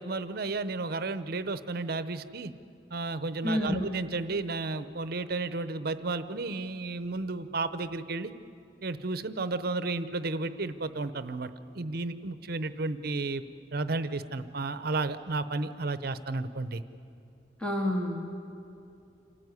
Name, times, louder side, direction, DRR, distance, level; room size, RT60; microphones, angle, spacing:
voice 1, 0.0-2.5 2.9-8.3 8.8-11.5 11.7-13.4 13.7-16.8, right 3 dB, 55° right, 12 dB, 0.8 m, -32 dB
voice 2, 3.4-3.9 17.6-18.3, left 1 dB, 5° left, -1 dB, 2.0 m, -29 dB
27.5 x 14.0 x 9.7 m, 2.7 s
head